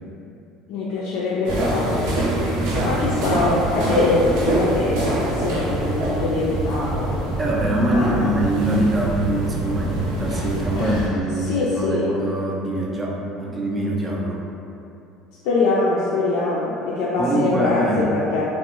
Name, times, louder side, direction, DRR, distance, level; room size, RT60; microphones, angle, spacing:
voice 1, 0.7-2.1 2.8-7.1 7.9-8.3 10.8-11.0 11.4-12.1 15.4-18.4, left 3 dB, 75° left, -7 dB, 0.3 m, -23 dB
sound 1, 1.4-11.1, right 1 dB, 80° right, 0.6 m, -25 dB
voice 2, 7.4-14.4 17.2-18.1, right 1 dB, 15° right, -3 dB, 0.4 m, -24 dB
2.5 x 2.0 x 2.9 m, 2.8 s
cardioid pair, 135°, 0 cm